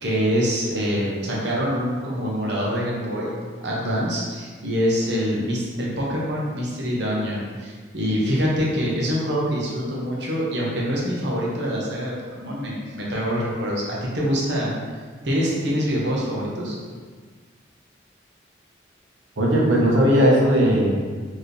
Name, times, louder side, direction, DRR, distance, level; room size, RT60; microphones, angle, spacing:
voice 1, 0.0-3.4 3.6-14.7 15.2-16.8, equal, 65° right, -4 dB, 0.9 m, -25 dB
voice 2, 19.4-21.0, equal, 85° right, -4 dB, 1.0 m, -17 dB
4.5 x 3.0 x 3.3 m, 1.5 s
head